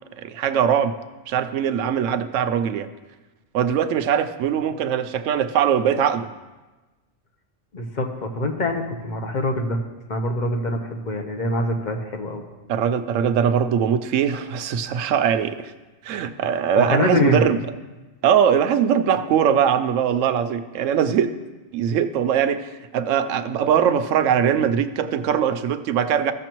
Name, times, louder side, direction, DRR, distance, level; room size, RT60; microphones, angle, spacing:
voice 1, 0.2-1.0 1.3-2.9 3.5-6.3 12.7-15.7 16.0-17.6 18.2-21.3 21.7-26.3, right 8 dB, 80° right, 10 dB, 0.9 m, -21 dB
voice 2, 7.7-9.8 10.1-12.4 16.7-17.4, left 1 dB, 40° left, 4 dB, 0.9 m, -24 dB
15.0 x 6.6 x 3.0 m, 1.2 s
omnidirectional pair, 1.3 m